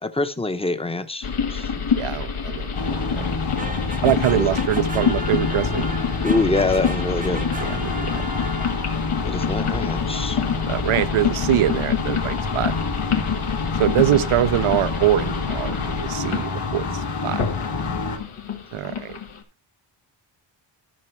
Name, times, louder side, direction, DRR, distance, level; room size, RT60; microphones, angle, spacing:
voice 1, 0.0-1.7 4.3-4.6 6.2-7.5 9.2-10.4 14.0-14.2, left 2 dB, 10° left, 0.8 m, -25 dB
sound 1, 1.2-19.4, left 6 dB, 80° left, 1.8 m, -27 dB
voice 2, 2.0-3.3 4.0-5.9 7.6-8.2 10.7-12.7 13.8-17.4 18.7-19.2, right 12 dB, 85° right, 0.8 m, -23 dB
sound 2, 2.7-18.2, left 4 dB, 55° left, 2.4 m, -28 dB
sound 3, 3.6-9.1, right 2 dB, 15° right, 0.9 m, -36 dB
13.5 x 5.9 x 4.4 m
wide cardioid pair, 115°, 49 cm